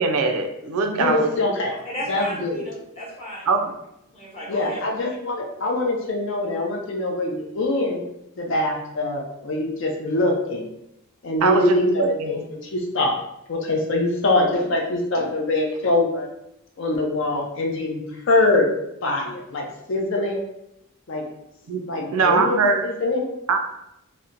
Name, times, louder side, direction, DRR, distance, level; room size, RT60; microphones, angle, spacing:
voice 1, 0.0-1.3 3.5-3.6 11.4-12.4 21.7-21.8 22.1-22.9 23.5-23.6, right 4 dB, 90° right, 5 dB, 0.4 m, -21 dB
voice 2, 0.9-1.7 2.1-2.7 4.5-8.0 8.4-10.7 11.2-13.1 13.5-16.3 16.8-18.7 19.0-20.4 21.1-21.2 21.9-23.3, left 2 dB, 55° left, 1 dB, 0.5 m, -23 dB
voice 3, 1.7-3.5 4.1-4.9, equal, 30° left, -7 dB, 0.9 m, -34 dB
2.8 x 2.1 x 2.5 m, 0.82 s
head